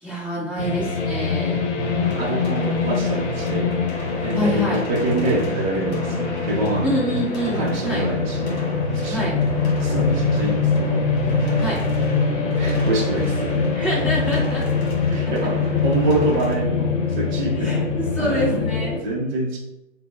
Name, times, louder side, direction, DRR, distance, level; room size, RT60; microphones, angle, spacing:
voice 1, 0.0-1.6 4.3-4.8 6.8-8.1 9.1-9.4 11.6-11.8 13.7-14.7 17.5-19.0, left 1 dB, 5° left, -10 dB, 0.9 m, -26 dB
sound 1, 0.6-19.0, left 4 dB, 70° left, 0.7 m, -23 dB
sound 2, 1.8-16.6, equal, 35° left, 1.4 m, -36 dB
voice 2, 2.2-3.8 4.2-6.9 7.5-8.6 8.9-9.4 9.8-11.1 12.4-13.7 15.1-17.9 18.2-19.6, right 2 dB, 40° right, -3 dB, 0.5 m, -26 dB
4.2 x 2.0 x 2.4 m, 0.89 s
hypercardioid pair, 145°, 38 cm